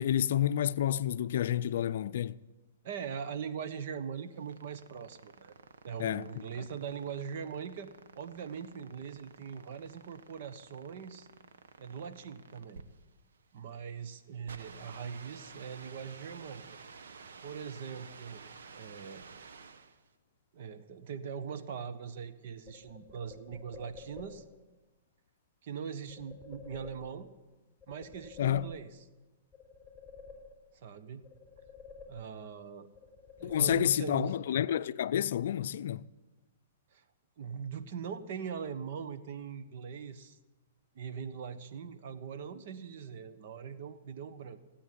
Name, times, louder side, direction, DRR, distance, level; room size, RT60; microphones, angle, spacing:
voice 1, 0.0-2.4 6.0-6.3 6.6-6.7 28.4-28.7 33.4-36.1, left 10 dB, 65° left, 0.5 m, -29 dB
voice 2, 2.8-5.5 5.8-11.3 11.8-12.8 13.5-16.6 17.4-18.4 18.7-19.2 20.5-24.4 25.6-27.3 27.9-29.0 30.7-31.2 32.1-32.9 33.4-34.4 36.9-37.0 37.4-40.4 40.9-44.6, right 7 dB, 60° right, 1.3 m, -41 dB
sound 1, 4.2-20.1, right 5 dB, 80° right, 1.3 m, -52 dB
sound 2, 22.7-24.6 26.1-27.5 27.8-29.2 29.5-30.9 31.2-32.6 32.9-34.3, left 4 dB, ahead, 4.0 m, -51 dB
17.5 x 8.5 x 9.7 m
hypercardioid pair, 130°, 0 cm